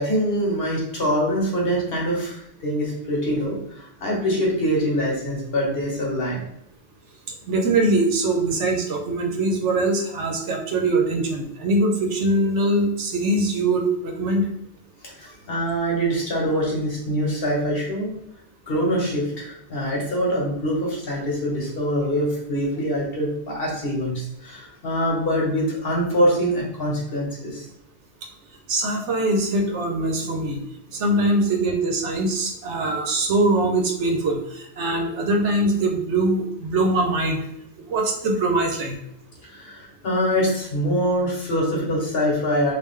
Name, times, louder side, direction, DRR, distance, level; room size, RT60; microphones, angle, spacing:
voice 1, 0.0-6.4 15.1-18.1 18.7-27.7 39.4-42.7, equal, 55° left, -2 dB, 1.2 m, -24 dB
voice 2, 7.5-14.5 28.7-30.6 30.9-37.4 37.9-39.0, right 2 dB, 75° right, 3 dB, 0.9 m, -22 dB
3.1 x 2.5 x 3.5 m, 0.78 s
omnidirectional pair, 1.2 m